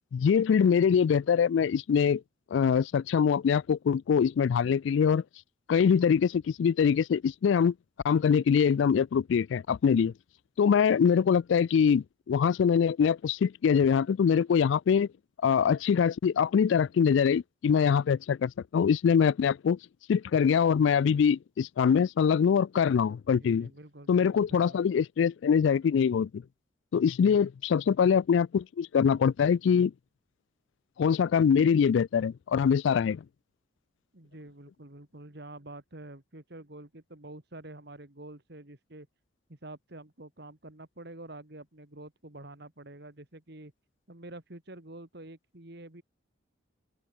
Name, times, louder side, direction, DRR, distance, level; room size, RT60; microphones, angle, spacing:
voice 1, 0.1-2.2 2.5-5.2 5.7-7.7 8.0-10.1 10.6-15.1 15.4-19.8 20.1-23.7 24.1-26.4 26.9-29.9 31.0-33.2, left 7 dB, 70° left, 0.3 m, -24 dB
voice 2, 23.4-24.8 34.1-39.1 39.5-43.7 44.1-46.0, right 2 dB, 55° right, 2.3 m, -47 dB
open air
head